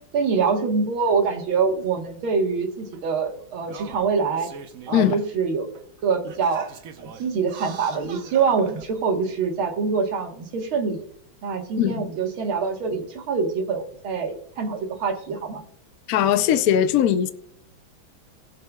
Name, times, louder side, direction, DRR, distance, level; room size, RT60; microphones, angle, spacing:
voice 1, 0.1-4.5 4.9-5.7 6.0-6.7 7.0-11.0 11.4-15.6, right 5 dB, 85° right, 2.3 m, -25 dB
Singing, 1.8-1.9 2.9-3.0 3.6-5.3 5.7-5.8 6.3-8.9 9.6-9.7, right 6 dB, 55° right, 1.0 m, -42 dB
voice 2, 16.1-17.3, left 10 dB, 75° left, 0.8 m, -20 dB
19.0 x 7.5 x 2.3 m
omnidirectional pair, 2.2 m